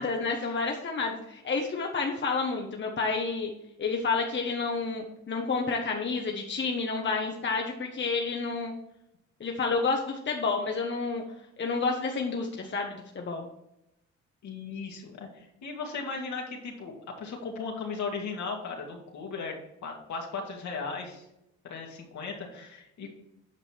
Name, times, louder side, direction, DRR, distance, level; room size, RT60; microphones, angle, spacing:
voice 1, 0.0-3.5 3.8-8.7 9.4-11.2 11.6-13.5, left 4 dB, 40° left, 1 dB, 1.1 m, -30 dB
voice 2, 14.4-21.3 21.7-23.1, left 4 dB, 70° left, 0 dB, 2.4 m, -37 dB
8.9 x 5.4 x 4.5 m, 0.84 s
cardioid pair, 90°, 30 cm